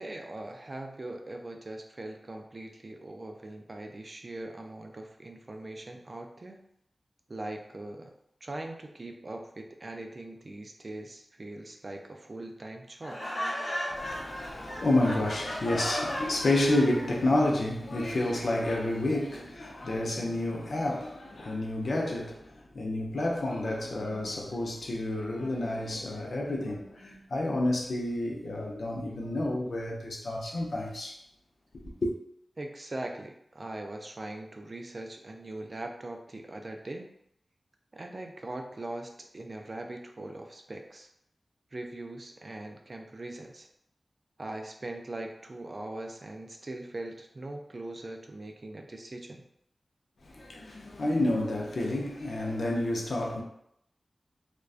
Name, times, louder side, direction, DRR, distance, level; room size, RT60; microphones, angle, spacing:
voice 1, 0.0-6.6 7.3-8.1 8.4-13.2 32.6-37.1 37.9-41.1 41.7-43.7 44.4-49.4, right 2 dB, 45° right, 0.3 m, -41 dB
Laughter, 13.0-17.1, equal, 55° left, 1.0 m, -36 dB
voice 2, 13.9-31.2 32.0-32.1 50.2-53.4, left 1 dB, 80° left, 0.5 m, -30 dB
2.4 x 2.1 x 2.4 m
wide cardioid pair, 75°, 0 cm